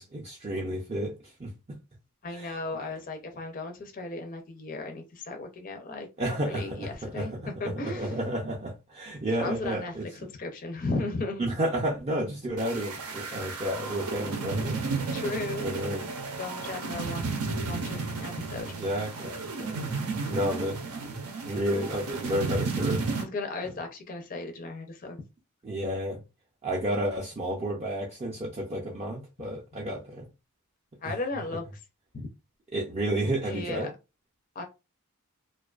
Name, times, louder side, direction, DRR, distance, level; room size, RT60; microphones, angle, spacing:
voice 1, 0.0-1.5 2.3-2.5 6.2-7.4 7.8-10.3 11.4-14.8 15.6-16.1 18.6-20.0 20.3-20.8 21.4-23.0 25.6-26.2 26.6-30.3 31.0-31.1 32.7-33.9, right 1 dB, 30° right, 0.4 m, -31 dB
voice 2, 2.2-7.3 7.6-8.2 9.3-9.9 10.4-11.4 15.1-15.7 16.4-17.4 17.6-18.7 23.2-25.2 31.0-31.6 32.1-32.3 33.4-33.9 34.6-34.7, left 3 dB, 35° left, 0.4 m, -35 dB
sound 1, 12.6-23.2, right 4 dB, 85° right, 0.6 m, -33 dB
2.4 x 2.2 x 2.3 m
head